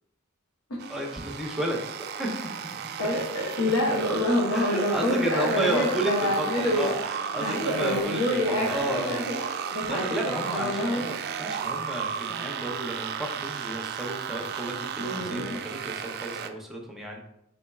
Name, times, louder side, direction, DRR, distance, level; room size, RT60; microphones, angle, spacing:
sound 1, 0.8-16.5, right 7 dB, 50° right, 0.3 m, -34 dB
voice 1, 0.9-1.8 2.1-2.7 4.5-9.6 9.9-17.2, right 1 dB, ahead, -1 dB, 0.6 m, -32 dB
voice 2, 3.0-6.9 7.4-8.7 8.9-9.4 9.7-11.1 15.0-15.6, left 1 dB, 90° left, -5 dB, 0.8 m, -27 dB
4.4 x 4.1 x 2.3 m, 0.82 s
head